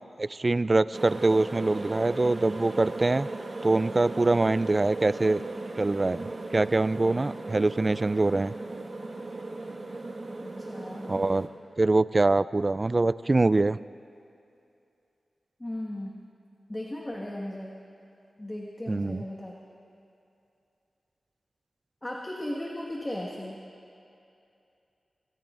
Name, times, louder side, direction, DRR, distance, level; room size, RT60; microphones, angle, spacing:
voice 1, 0.2-3.3 3.6-5.4 5.8-8.5 11.1-11.5 11.8-13.8 18.9-19.2, right 2 dB, 35° right, 16 dB, 0.3 m, -24 dB
sound 1, 0.9-11.5, right 2 dB, 50° right, 1.5 m, -37 dB
voice 2, 10.4-11.2 15.6-16.1 16.7-17.7 18.4-19.5 22.0-23.6, left 1 dB, 20° left, -3 dB, 1.6 m, -36 dB
26.5 x 18.5 x 2.5 m, 2.6 s
wide cardioid pair, 65°, 0 cm